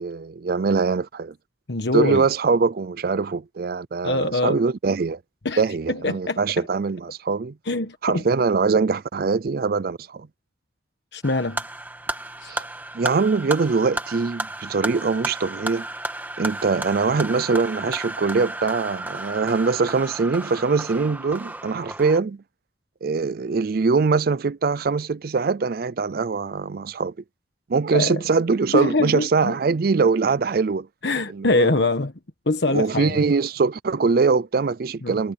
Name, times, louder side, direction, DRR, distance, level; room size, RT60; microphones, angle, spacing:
voice 1, 0.0-1.3 1.9-5.2 5.6-7.5 8.0-10.3 12.5-12.7 12.9-15.9 16.4-22.4 23.0-27.1 27.7-30.9 31.3-31.9 32.7-35.3, right 4 dB, 50° right, 0.4 m, -22 dB
voice 2, 1.7-2.3 4.0-4.6 5.4-5.6 5.9-6.6 7.7-8.2 11.1-11.6 12.4-12.6 27.9-28.2 28.7-29.6 31.0-32.1 32.5-33.3 35.0-35.2, left 2 dB, 65° left, 1.3 m, -24 dB
sound 1, 11.2-22.2, right 1 dB, 10° right, 1.8 m, -33 dB
head